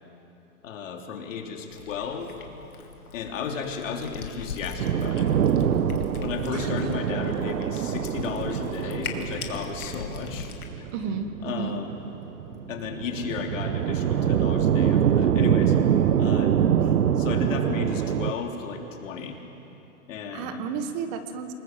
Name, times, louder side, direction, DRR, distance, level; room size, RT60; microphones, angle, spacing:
voice 1, 0.6-2.3 3.1-5.3 6.2-10.9 11.4-12.0 12.7-15.8 16.2-19.4 20.1-20.6, left 6 dB, 60° left, 2 dB, 3.4 m, -34 dB
Cat, 1.7-10.7, left 6 dB, 90° left, 2.7 m, -39 dB
sound 1, 4.8-18.3, right 9 dB, 85° right, 1.2 m, -24 dB
voice 2, 10.9-11.8 20.3-21.5, right 6 dB, 30° right, 8 dB, 1.4 m, -32 dB
27.5 x 20.0 x 7.5 m, 2.9 s
hypercardioid pair, 155°, 44 cm